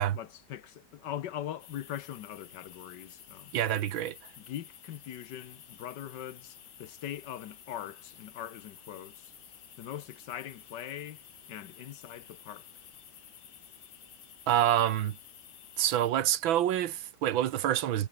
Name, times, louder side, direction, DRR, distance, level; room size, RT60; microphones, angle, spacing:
voice 1, 0.0-3.5 4.4-9.3 9.8-11.2 11.5-12.7, left 11 dB, 65° left, 1.4 m, -41 dB
sound 1, 1.6-16.1, left 10 dB, 90° left, 2.2 m, -53 dB
voice 2, 3.5-4.2 14.5-15.2 15.8-18.1, right 11 dB, 80° right, 1.8 m, -27 dB
omnidirectional pair, 2.1 m